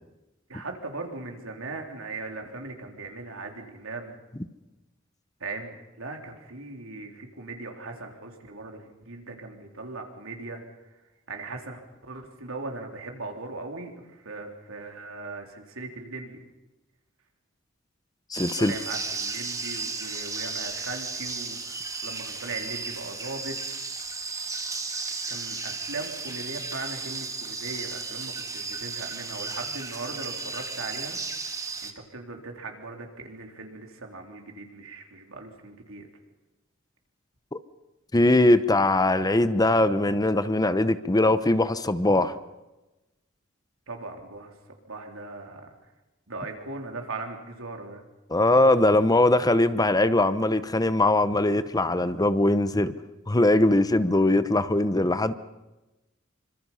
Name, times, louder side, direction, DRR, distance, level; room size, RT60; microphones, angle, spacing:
voice 1, 0.5-4.2 5.4-10.6 11.3-16.4 18.4-23.6 25.3-31.2 31.8-36.1 43.9-44.5 44.8-45.7 46.3-48.0, right 3 dB, 90° right, 2 dB, 3.8 m, -39 dB
voice 2, 18.3-18.7 37.5-37.6 38.1-42.3 48.3-52.9 53.3-55.3, left 2 dB, 20° left, 13 dB, 0.8 m, -21 dB
sound 1, 18.3-31.9, right 4 dB, 15° right, 1.7 m, -34 dB
27.0 x 25.5 x 5.7 m, 1.0 s
head